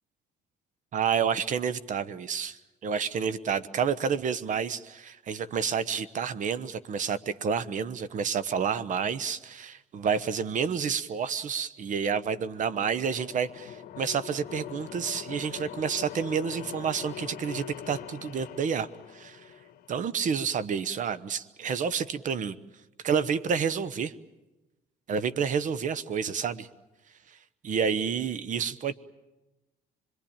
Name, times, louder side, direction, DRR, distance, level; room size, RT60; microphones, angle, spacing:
voice 1, 0.9-18.9 19.1-19.4 19.9-22.6 23.0-24.1 25.1-26.7 27.6-28.9, right 6 dB, 50° right, 15 dB, 1.1 m, -29 dB
sound 1, 12.2-20.0, left 10 dB, 65° left, 1.4 m, -43 dB
26.0 x 22.0 x 8.8 m, 1.0 s
cardioid pair, 110°, 17 cm